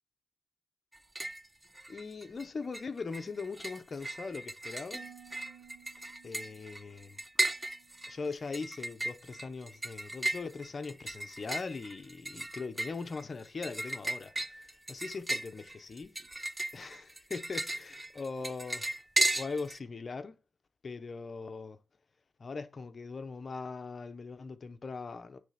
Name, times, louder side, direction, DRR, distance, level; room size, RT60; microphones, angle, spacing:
sound 1, 0.9-1.5 1.7-2.4 2.7-19.8, right 2 dB, 15° right, 0.3 m, -36 dB
voice 1, 1.9-5.0 6.2-7.2 8.1-16.1 16.7-18.9 19.4-20.4 20.8-21.8 22.4-25.4, left 4 dB, 40° left, 0.9 m, -40 dB
Harp, 4.9-9.0 9.3-9.9 10.4-10.7, right 8 dB, 90° right, 1.0 m, -58 dB
9.8 x 3.5 x 5.8 m
wide cardioid pair, 130°, 0 cm